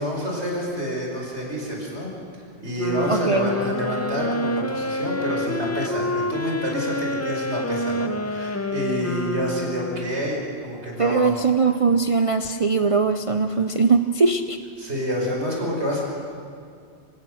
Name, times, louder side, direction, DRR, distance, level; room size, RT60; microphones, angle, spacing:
voice 1, 0.0-2.1 2.6-11.4 14.8-16.0, equal, 65° right, -1 dB, 5.1 m, -28 dB
sound 1, 2.8-10.5, left 1 dB, 20° left, 0.5 m, -28 dB
voice 2, 3.1-3.5 11.0-14.6, right 4 dB, 35° right, 8 dB, 0.6 m, -20 dB
27.0 x 17.0 x 6.4 m, 2.3 s
omnidirectional pair, 1.2 m